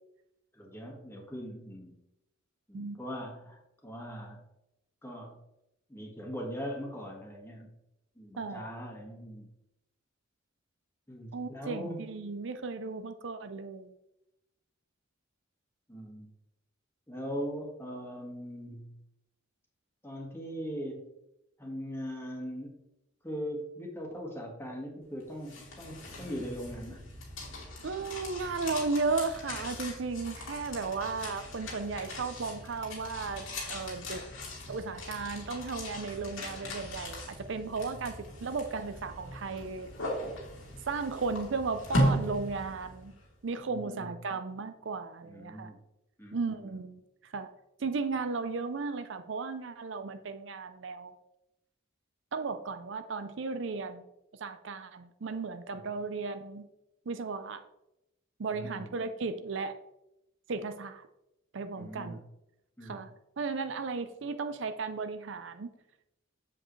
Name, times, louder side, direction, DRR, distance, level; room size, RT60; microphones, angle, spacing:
voice 1, 0.5-1.9 2.7-4.4 5.0-5.4 5.9-7.7 8.1-9.5 11.1-12.0 15.9-16.3 17.1-19.0 20.0-21.0 21.6-22.7 23.2-27.1 37.8-38.0 43.6-44.1 45.2-45.8 46.2-46.8 55.7-55.9 58.5-58.9 61.7-62.2 62.8-63.0, equal, 10° left, -1 dB, 1.6 m, -40 dB
voice 2, 8.4-8.7 11.3-13.9 27.8-34.2 34.7-39.9 40.9-43.1 43.4-45.7 46.3-47.5 47.8-51.1 52.3-54.0 54.4-56.6 57.1-57.6 58.4-59.8 60.5-61.1 61.5-62.2 62.8-63.1 63.4-65.7, right 4 dB, 65° right, 9 dB, 0.5 m, -35 dB
sound 1, 25.2-43.2, equal, 85° left, 2.6 m, -38 dB
7.7 x 7.5 x 3.2 m, 0.88 s
head